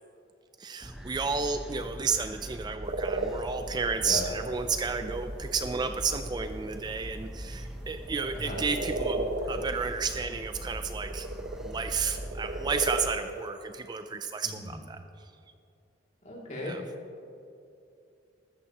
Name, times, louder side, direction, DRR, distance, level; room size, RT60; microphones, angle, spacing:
voice 1, 0.6-11.3 11.6-15.3 16.6-16.8, right 5 dB, 20° right, 8 dB, 0.3 m, -32 dB
sound 1, 0.8-13.1, equal, ahead, 0.7 m, -41 dB
sound 2, 2.8-3.4 3.9-4.0 4.6-6.8 8.0-9.7 10.9-13.1, right 2 dB, 60° right, 0.9 m, -34 dB
voice 2, 8.3-8.6 14.4-14.7 16.2-16.8, left 1 dB, 40° left, -4 dB, 2.6 m, -37 dB
15.0 x 13.0 x 3.0 m, 2.6 s
head